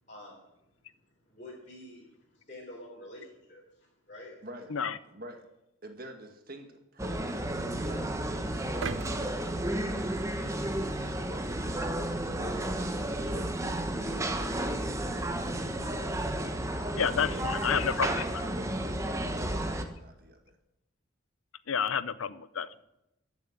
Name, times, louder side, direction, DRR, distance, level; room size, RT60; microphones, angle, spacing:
voice 1, 0.1-0.5 0.9-1.0 1.2-4.4, left 1 dB, 35° left, -5 dB, 4.0 m, -48 dB
voice 2, 5.1-5.4 5.8-8.9 9.7-11.8 12.3-16.2 16.9-20.6, right 1 dB, 45° right, 5 dB, 2.0 m, -47 dB
sound 1, 7.0-19.9, right 1 dB, 15° right, 1.1 m, -32 dB
sound 2, 8.8-11.0 11.5-11.6, right 5 dB, 70° right, 0.7 m, -41 dB
voice 3, 17.0-18.2 21.7-22.7, left 7 dB, 85° left, 16 dB, 0.7 m, -29 dB
14.5 x 7.3 x 9.9 m, 0.87 s
head